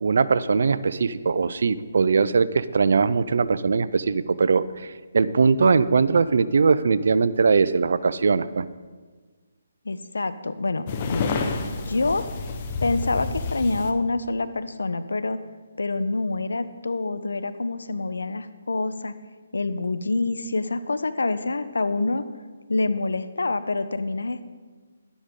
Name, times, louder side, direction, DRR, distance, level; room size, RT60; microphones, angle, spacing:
voice 1, 0.0-8.7, right 5 dB, 65° right, 16 dB, 0.5 m, -21 dB
voice 2, 9.8-10.9 11.1-11.3 11.8-12.2 12.8-15.4 15.8-19.1 19.5-22.2 22.7-24.4, left 3 dB, 90° left, 12 dB, 0.7 m, -26 dB
sound 1, 10.9-13.9, left 4 dB, 35° left, 0.9 m, -29 dB
12.0 x 10.0 x 3.7 m, 1.4 s
hypercardioid pair, 155°, 0 cm